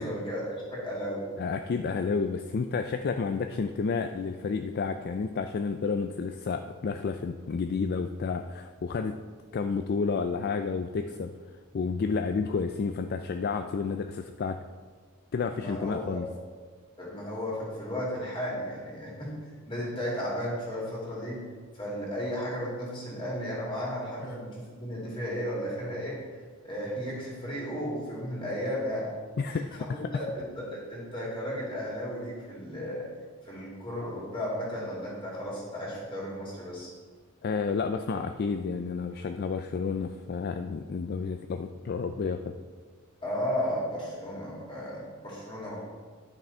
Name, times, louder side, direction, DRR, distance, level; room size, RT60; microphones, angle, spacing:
voice 1, 0.0-1.3 15.5-16.2 17.0-21.4 21.7-29.1 29.4-33.0 33.4-36.9 43.2-45.8, equal, 25° left, -5 dB, 2.8 m, -34 dB
voice 2, 1.4-9.1 9.5-11.3 11.7-14.6 15.3-16.3 29.4-30.0 37.4-42.5, left 5 dB, 50° left, 6 dB, 0.3 m, -30 dB
10.5 x 6.1 x 4.3 m, 1.5 s
head